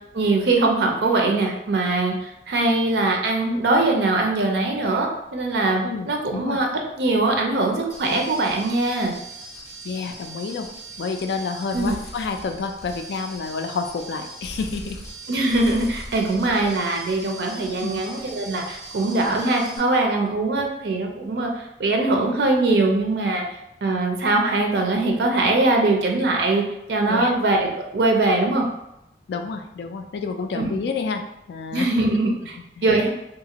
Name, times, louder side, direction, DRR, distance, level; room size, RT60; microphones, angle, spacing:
voice 1, 0.1-6.7 7.0-9.1 11.7-11.9 15.3-23.4 23.8-26.6 26.9-28.7 30.6-30.7 31.7-32.6 32.8-33.1, right 2 dB, 70° right, 2 dB, 0.4 m, -22 dB
voice 2, 5.8-6.6 9.8-10.7 11.0-15.0 17.8-18.0 27.1-27.3 29.3-31.2 31.5-31.9 32.8-32.9, left 4 dB, 70° left, 6 dB, 0.3 m, -29 dB
sound 1, 7.9-19.8, right 2 dB, 20° left, 0.6 m, -40 dB
2.7 x 2.4 x 2.8 m, 0.86 s
head